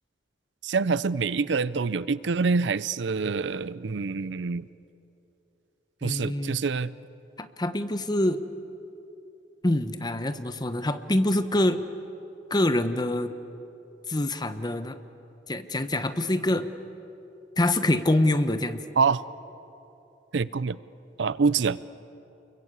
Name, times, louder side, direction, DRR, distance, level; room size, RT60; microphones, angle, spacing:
voice 1, 0.6-4.7 6.0-6.9 19.0-19.2 20.3-20.8 21.2-21.8, right 4 dB, 75° right, 18 dB, 0.6 m, -26 dB
voice 2, 6.0-6.6 7.4-8.4 9.6-11.8 12.5-13.3 14.1-15.0 15.5-16.7 17.6-18.8, left 1 dB, 25° left, 10 dB, 1.0 m, -25 dB
29.5 x 22.5 x 8.3 m, 2.9 s
head